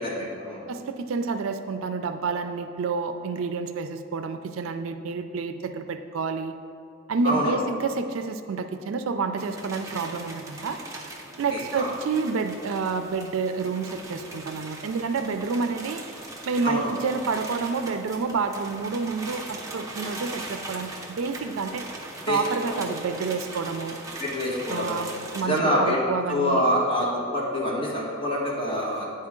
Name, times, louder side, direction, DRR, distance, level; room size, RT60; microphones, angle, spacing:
voice 1, 0.0-0.6 7.2-7.6 11.5-11.9 16.6-17.0 22.3-22.4 22.7-22.8 24.2-25.0 25.4-26.0 26.3-29.1, equal, 25° left, -6 dB, 1.6 m, -26 dB
voice 2, 0.7-6.5 7.1-10.8 11.4-16.0 16.5-21.9 22.2-24.0 24.7-26.6, right 4 dB, 75° right, 8 dB, 0.4 m, -29 dB
sound 1, 9.4-25.4, right 2 dB, 15° right, 0.6 m, -40 dB
9.7 x 4.4 x 3.6 m, 2.4 s
head